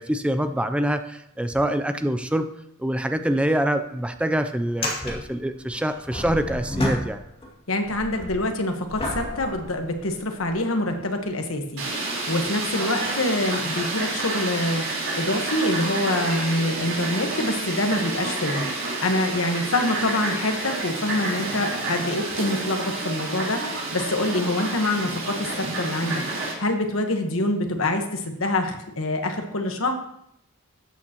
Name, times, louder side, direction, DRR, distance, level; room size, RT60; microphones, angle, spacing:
voice 1, 0.0-2.5 2.8-7.2, right 1 dB, 5° right, 8 dB, 0.4 m, -25 dB
sound 1, 4.6-7.5 7.8-10.5 11.2-11.3 15.4-15.6 16.9-17.0, left 1 dB, 25° left, 2.3 m, -32 dB
voice 2, 7.7-30.1, left 1 dB, 75° left, 5 dB, 1.3 m, -26 dB
Fowl, 11.8-26.5, right 2 dB, 70° right, 4.0 m, -29 dB
13.0 x 8.8 x 3.0 m, 0.76 s
head